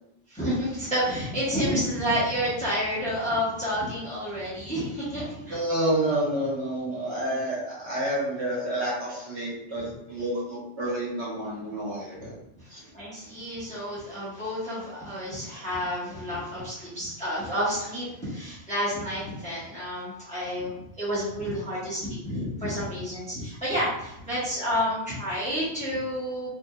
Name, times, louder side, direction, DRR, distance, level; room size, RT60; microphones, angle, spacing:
voice 1, 0.3-5.6 12.7-26.5, equal, 5° left, -10 dB, 1.0 m, -30 dB
voice 2, 5.5-12.4 12.7-12.8, right 1 dB, 65° right, -5 dB, 1.2 m, -29 dB
3.4 x 2.6 x 2.2 m, 0.85 s
omnidirectional pair, 1.2 m